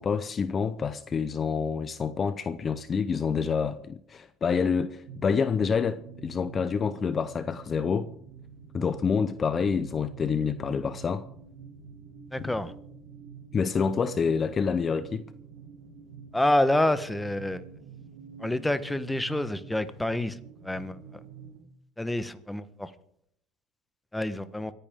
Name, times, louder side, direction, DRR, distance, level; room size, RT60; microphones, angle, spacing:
voice 1, 0.0-8.1 8.7-11.3 12.4-12.6 13.5-15.3, left 6 dB, 35° left, 0.7 m, -27 dB
sound 1, 5.0-21.6, right 6 dB, 80° right, 3.1 m, -47 dB
voice 2, 12.3-12.7 16.3-17.6 18.4-20.3 20.6-21.0 22.0-22.9 24.1-24.7, left 1 dB, 5° left, 1.2 m, -27 dB
26.0 x 10.0 x 3.7 m
hypercardioid pair, 85°, 0 cm